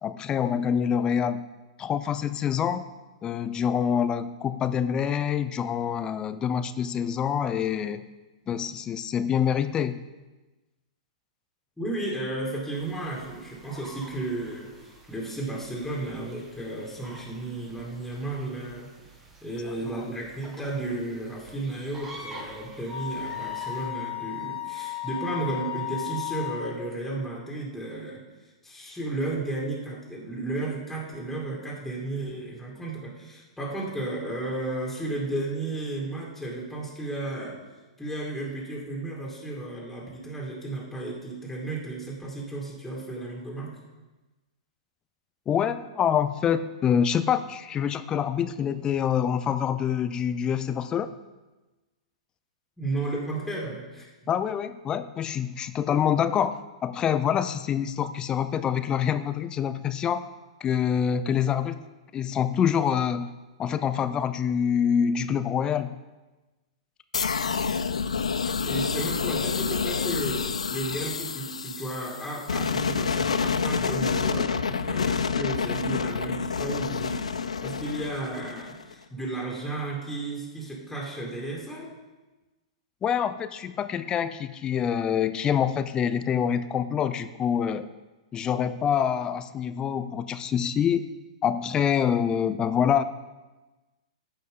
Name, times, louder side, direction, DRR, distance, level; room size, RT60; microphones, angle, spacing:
voice 1, 0.0-1.4 1.8-2.9 3.2-8.0 8.5-10.0 19.9-20.0 45.5-51.1 54.3-60.2 60.6-61.8 62.1-63.3 63.6-66.0 83.0-87.9 88.3-91.0 91.4-93.0, left 8 dB, 25° left, 12 dB, 0.5 m, -26 dB
voice 2, 11.8-18.9 19.4-28.2 28.6-37.5 38.0-43.7 52.8-54.1 68.6-81.9, right 2 dB, 5° left, -4 dB, 2.4 m, -33 dB
sound 1, 12.7-23.9, right 2 dB, 15° right, 1.9 m, -48 dB
Wind instrument woodwind instrument, 22.9-26.7, left 14 dB, 50° right, 1.9 m, -34 dB
sound 2, 67.1-78.9, left 5 dB, 85° left, 0.4 m, -28 dB
14.5 x 5.4 x 3.8 m, 1.1 s
hypercardioid pair, 115°, 3 cm